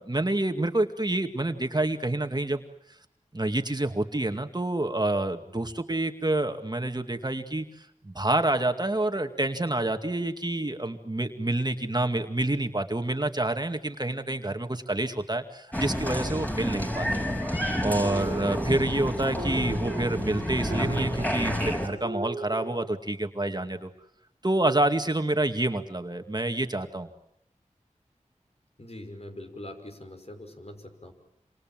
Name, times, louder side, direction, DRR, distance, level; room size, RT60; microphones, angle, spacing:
voice 1, 0.0-2.6 3.3-17.3 17.8-23.9 24.4-27.1, right 2 dB, 35° right, 6 dB, 2.2 m, -28 dB
Applause, 15.7-21.9, equal, 10° left, 6.5 m, -29 dB
sound 1, 18.0-22.9, right 3 dB, 70° right, 2.5 m, -38 dB
voice 2, 28.8-31.1, left 1 dB, 55° left, 5 dB, 5.8 m, -43 dB
27.5 x 27.5 x 7.7 m, 0.74 s
wide cardioid pair, 45°, 13 cm